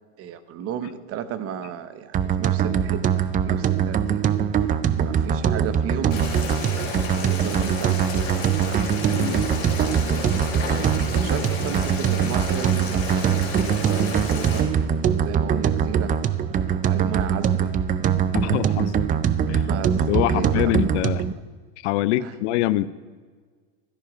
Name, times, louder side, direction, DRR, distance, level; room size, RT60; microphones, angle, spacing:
voice 1, 0.2-4.3 5.0-9.4 10.0-14.7 15.1-16.1 16.7-17.7 18.4-18.9 19.5-21.2 22.2-22.4, right 9 dB, 45° right, 13 dB, 0.9 m, -34 dB
sound 1, 2.1-21.3, right 8 dB, 25° right, 0.4 m, -22 dB
Boiling, 6.1-14.6, left 4 dB, 45° left, 3.8 m, -32 dB
voice 2, 9.1-9.5 18.3-19.1 19.5-19.7 20.0-21.2 21.8-22.9, left 15 dB, 80° left, 17 dB, 0.6 m, -24 dB
13.0 x 10.5 x 5.0 m, 1.5 s
supercardioid pair, 130°, 34 cm